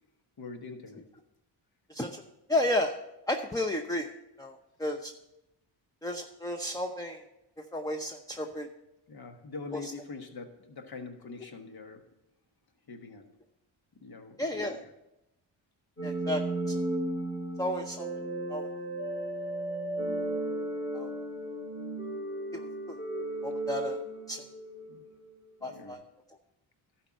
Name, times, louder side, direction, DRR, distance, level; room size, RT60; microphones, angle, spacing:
voice 1, 0.4-1.1 9.1-12.1 12.9-13.3 14.0-14.9 24.9-25.0 25.6-26.0, left 4 dB, 50° left, 5 dB, 1.4 m, -44 dB
voice 2, 1.9-2.2 2.5-3.0 3.3-4.1 4.4-4.5 4.8-5.1 6.0-7.2 7.7-8.7 9.7-9.9 14.4-14.8 16.0-16.4 16.7-16.8 17.6-18.1 18.5-18.7 20.9-21.1 22.5-23.0 23.4-24.0 24.3-24.4 25.6-26.0, left 1 dB, 10° left, 3 dB, 0.7 m, -32 dB
sound 1, 16.0-24.9, right 1 dB, 35° left, 3.8 m, -34 dB
12.0 x 4.5 x 6.3 m, 0.90 s
cardioid pair, 65°, 46 cm